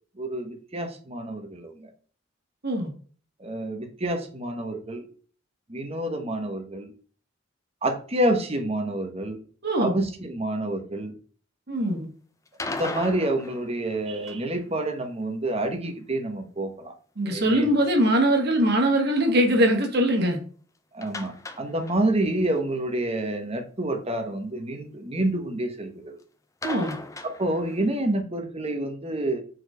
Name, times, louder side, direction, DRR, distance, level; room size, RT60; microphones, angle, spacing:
voice 1, 0.2-1.9 3.4-5.1 5.7-6.9 7.8-9.4 9.8-11.1 12.6-16.9 17.3-17.7 20.9-26.1 27.2-29.4, right 1 dB, 30° right, 5 dB, 1.2 m, -28 dB
voice 2, 9.6-10.0 11.7-12.1 17.2-20.4 26.6-26.9, right 1 dB, 55° right, 3 dB, 1.6 m, -22 dB
sound 1, 12.5-14.6 21.0-22.3 22.5-22.6 23.0-23.1 26.6-27.9, left 2 dB, 15° left, 0.6 m, -37 dB
4.6 x 4.4 x 5.0 m, 0.43 s
head